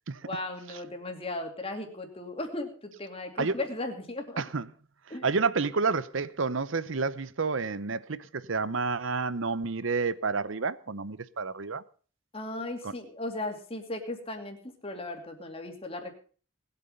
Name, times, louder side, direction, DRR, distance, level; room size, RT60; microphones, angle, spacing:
voice 1, 0.2-4.4 5.1-5.3 12.3-16.1, left 2 dB, 30° left, 2.6 m, -36 dB
voice 2, 4.4-4.7 5.2-11.8 12.8-12.9, right 4 dB, 70° right, 0.8 m, -29 dB
19.5 x 8.4 x 5.5 m
head